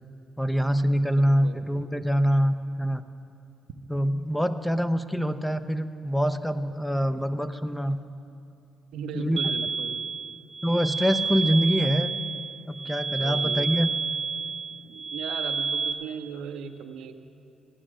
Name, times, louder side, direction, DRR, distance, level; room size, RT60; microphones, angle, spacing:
voice 1, 0.4-3.0 3.9-8.0 9.1-9.4 10.6-12.1 12.7-13.9, equal, 5° left, 11 dB, 0.5 m, -25 dB
voice 2, 1.1-1.6 8.9-10.0 13.0-13.8 14.8-17.1, right 6 dB, 85° right, 6 dB, 0.7 m, -38 dB
sound 1, 9.4-15.9, right 5 dB, 40° right, 0.9 m, -30 dB
15.0 x 9.9 x 6.2 m, 2.6 s
cardioid pair, 90°, 0 cm